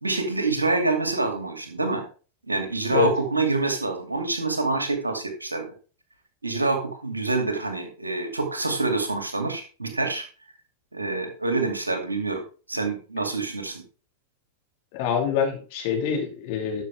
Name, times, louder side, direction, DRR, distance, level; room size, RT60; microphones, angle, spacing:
voice 1, 0.0-2.0 2.4-5.7 6.4-10.2 10.9-12.4 12.7-13.8, right 3 dB, 80° right, 5 dB, 2.4 m, -26 dB
voice 2, 14.9-16.8, left 7 dB, 50° left, 3 dB, 2.5 m, -25 dB
12.0 x 6.7 x 3.4 m, 0.36 s
figure-of-eight pair, 90°, 0 cm